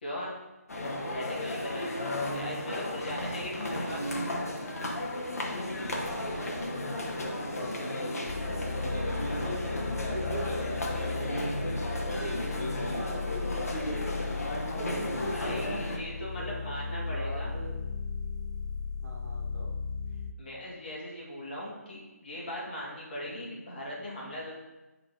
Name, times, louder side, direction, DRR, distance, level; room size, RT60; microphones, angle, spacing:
voice 1, 0.0-0.3 1.1-4.0 12.1-12.3 15.3-17.5 20.4-24.5, left 1 dB, 40° left, -5 dB, 1.8 m, -39 dB
sound 1, 0.7-16.0, left 1 dB, 65° left, 1.3 m, -34 dB
voice 2, 0.9-1.4 2.3-2.9 3.4-4.7 6.2-10.9 12.0-13.7 14.7-15.0 16.4-17.8 19.0-19.8 23.2-23.5, right 2 dB, 60° right, -1 dB, 1.4 m, -43 dB
sound 2, 8.3-20.3, left 5 dB, 90° left, 0.4 m, -36 dB
7.7 x 3.9 x 3.8 m, 1.1 s
hypercardioid pair, 170°, 9 cm